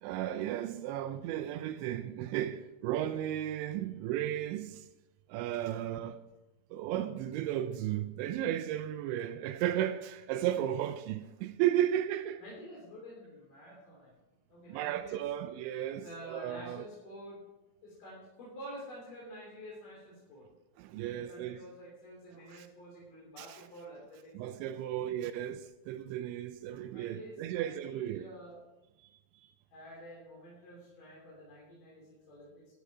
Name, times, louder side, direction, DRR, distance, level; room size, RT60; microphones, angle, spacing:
voice 1, 0.0-4.9 5.3-6.2 6.7-12.4 14.7-16.9 20.8-21.6 22.5-22.7 23.4-23.6 24.3-28.3 29.3-29.5, right 11 dB, 85° right, 2.9 m, -34 dB
voice 2, 12.4-14.1 14.5-15.2 16.0-17.4 17.8-20.4 21.0-24.7 26.9-28.6 29.7-32.7, equal, 50° left, 4.7 m, -49 dB
13.0 x 11.5 x 4.8 m
omnidirectional pair, 5.3 m